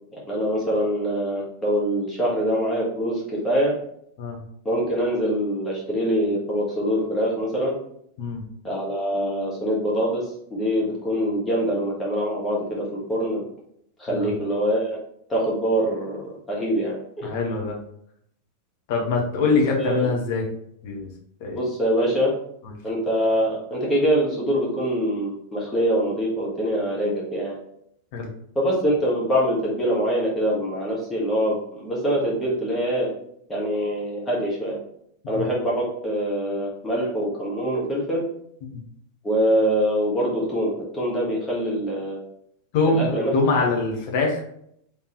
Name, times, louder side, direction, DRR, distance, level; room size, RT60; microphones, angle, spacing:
voice 1, 0.1-3.7 4.6-7.7 8.6-10.2 10.5-13.4 14.0-15.0 15.3-17.3 19.4-20.1 21.5-22.3 22.8-27.6 28.5-33.1 33.5-34.8 35.3-38.2 39.2-42.2 42.9-43.3, equal, 10° left, -5 dB, 1.7 m, -24 dB
voice 2, 17.2-17.8 18.9-20.4 20.8-21.1 21.4-21.6 22.6-22.7 28.1-28.3 35.3-35.5 38.7-38.8 42.7-44.4, left 3 dB, 45° left, 0 dB, 1.2 m, -23 dB
4.5 x 3.5 x 3.1 m, 0.70 s
figure-of-eight pair, 90°, 0 cm